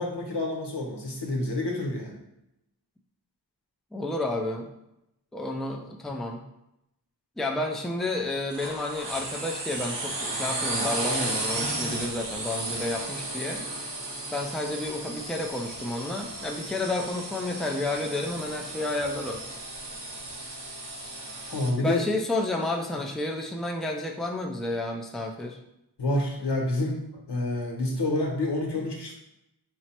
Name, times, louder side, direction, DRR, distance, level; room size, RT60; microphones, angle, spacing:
voice 1, 0.0-2.2 21.5-22.0 26.0-29.1, left 2 dB, 75° left, 0 dB, 1.0 m, -28 dB
voice 2, 3.9-4.7 5.3-6.4 7.4-13.6 14.3-19.4 21.8-25.6, left 2 dB, ahead, 1 dB, 0.5 m, -31 dB
sound 1, 8.5-21.7, right 2 dB, 80° right, 0.9 m, -34 dB
4.5 x 2.0 x 4.3 m, 0.85 s
wide cardioid pair, 50°, 41 cm